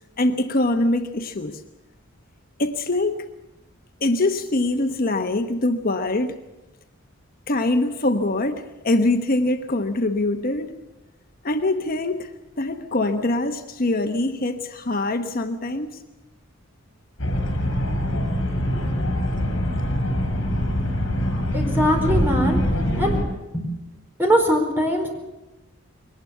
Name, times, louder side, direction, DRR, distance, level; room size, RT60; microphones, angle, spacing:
voice 1, 0.2-1.6 2.6-3.2 4.0-6.3 7.5-10.7 11.4-12.3 12.6-16.0, left 2 dB, 45° left, 5 dB, 1.1 m, -23 dB
sound 1, 17.2-23.2, equal, 65° left, 5.7 m, -23 dB
voice 2, 21.5-22.6 23.0-23.2 23.5-23.7 24.2-25.1, equal, 10° right, 2 dB, 4.5 m, -21 dB
22.5 x 19.5 x 7.0 m, 1.0 s
head